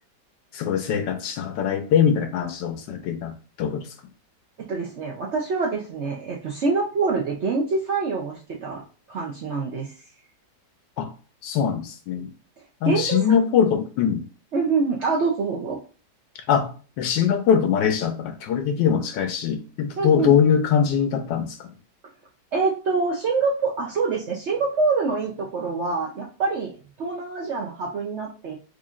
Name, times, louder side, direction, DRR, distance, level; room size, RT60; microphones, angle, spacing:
voice 1, 0.5-3.9 11.0-11.1 11.4-12.3 12.8-14.2 16.5-16.7 17.0-21.7, left 7 dB, 85° left, 7 dB, 1.3 m, -22 dB
voice 2, 4.6-8.8 9.1-9.9 12.6-13.2 14.5-15.8 20.0-20.3 22.5-26.7 27.0-28.6, right 4 dB, 65° right, -2 dB, 0.7 m, -25 dB
4.9 x 2.6 x 2.4 m, 0.38 s
omnidirectional pair, 1.9 m